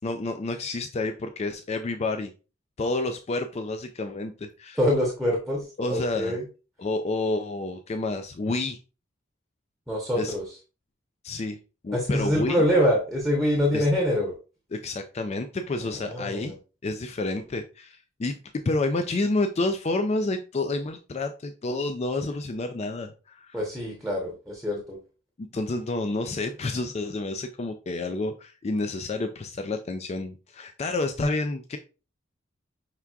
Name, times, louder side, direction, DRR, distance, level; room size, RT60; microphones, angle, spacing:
voice 1, 0.0-2.3 2.8-4.8 5.8-6.4 6.8-8.8 10.2-10.3 11.2-11.6 11.8-12.6 13.7-13.9 14.7-16.5 16.8-18.4 18.6-23.6 25.4-31.8, left 2 dB, 35° left, 7 dB, 0.4 m, -29 dB
voice 2, 4.8-6.4 9.9-10.4 11.9-14.3 15.9-16.5 23.5-25.0, equal, ahead, -1 dB, 0.9 m, -25 dB
5.8 x 3.4 x 2.4 m, 0.32 s
head